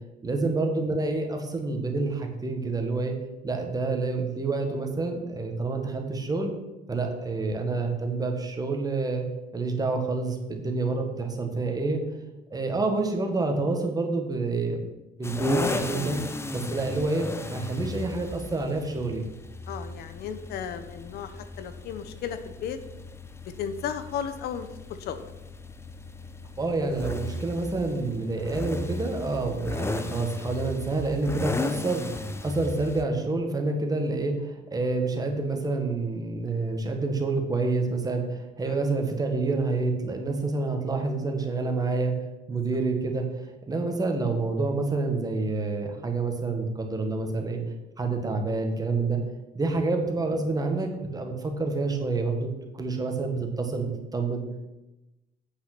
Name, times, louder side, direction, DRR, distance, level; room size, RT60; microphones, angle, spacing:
voice 1, 0.2-3.1 3.4-6.5 6.9-9.2 9.5-12.0 12.5-14.9 15.2-16.2 16.5-19.3 26.6-32.1 32.4-42.1 42.5-43.2 43.7-47.6 48.0-49.2 49.5-54.4, right 3 dB, 20° right, 3 dB, 1.6 m, -28 dB
sound 1, 15.2-33.0, left 2 dB, 15° left, 0.7 m, -35 dB
voice 2, 19.7-22.8 23.4-25.3 38.6-38.8, left 8 dB, 70° left, 10 dB, 0.8 m, -35 dB
8.5 x 5.5 x 6.0 m, 1.0 s
cardioid pair, 110°, 17 cm